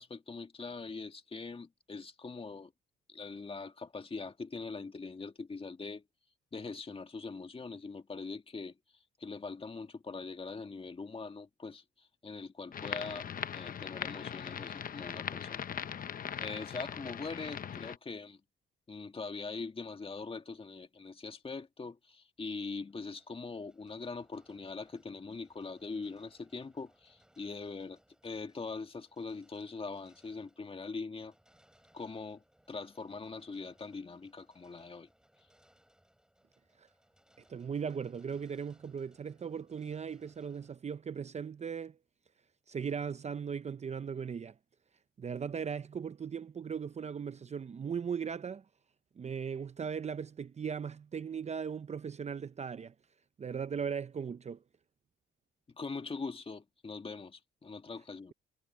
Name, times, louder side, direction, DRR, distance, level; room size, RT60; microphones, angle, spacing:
voice 1, 0.0-2.7 3.1-6.0 6.5-8.8 9.2-13.3 13.5-15.6 16.4-18.4 18.9-31.3 31.9-35.1 55.7-58.3, left 4 dB, 30° left, 1.9 m, -42 dB
sound 1, 12.7-18.0, left 8 dB, 45° left, 0.9 m, -40 dB
sound 2, 22.4-40.8, equal, 5° right, 7.7 m, -69 dB
voice 2, 37.5-42.0 42.7-44.6 45.2-48.6 49.2-52.9 53.4-54.6, right 6 dB, 35° right, 0.7 m, -38 dB
cardioid pair, 90°, 20 cm